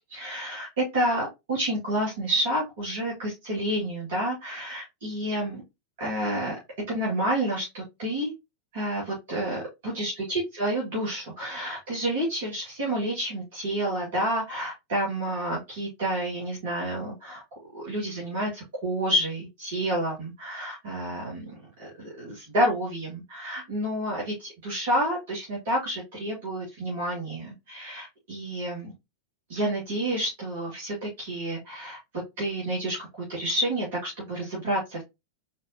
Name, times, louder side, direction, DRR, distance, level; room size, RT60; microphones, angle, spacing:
voice 1, 0.1-5.6 6.0-6.6 6.9-8.3 8.7-17.4 17.7-21.5 21.8-28.9 29.5-32.0 32.4-35.0, right 1 dB, 55° right, -5 dB, 2.3 m, -29 dB
4.3 x 4.2 x 2.8 m, 0.23 s
figure-of-eight pair, 90°, 0 cm